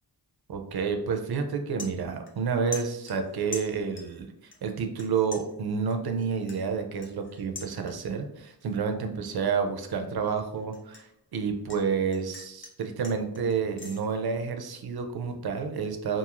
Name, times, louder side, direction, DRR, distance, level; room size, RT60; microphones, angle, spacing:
voice 1, 0.5-16.2, right 5 dB, 65° right, 5 dB, 0.5 m, -30 dB
sound 1, 1.0-1.1 1.4-2.5 2.7-4.2 4.5-5.1 5.3-8.2 8.6-9.0 9.4-11.8 12.1-14.0, left 3 dB, 30° left, 0.6 m, -44 dB
2.9 x 2.5 x 2.4 m, 0.75 s
wide cardioid pair, 100°, 41 cm